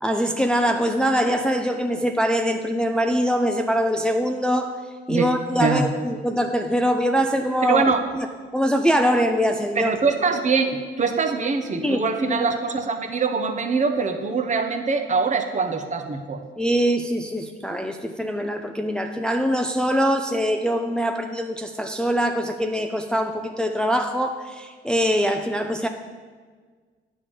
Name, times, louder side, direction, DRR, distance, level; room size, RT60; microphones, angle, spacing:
voice 1, 0.0-4.8 5.1-7.8 8.1-8.3 8.5-9.9 11.7-12.5 16.6-25.9, equal, 5° left, 5 dB, 0.4 m, -23 dB
voice 2, 7.7-8.0 9.7-16.4, right 4 dB, 40° right, 6 dB, 0.8 m, -23 dB
8.6 x 3.6 x 6.8 m, 1.5 s
cardioid pair, 90°, 20 cm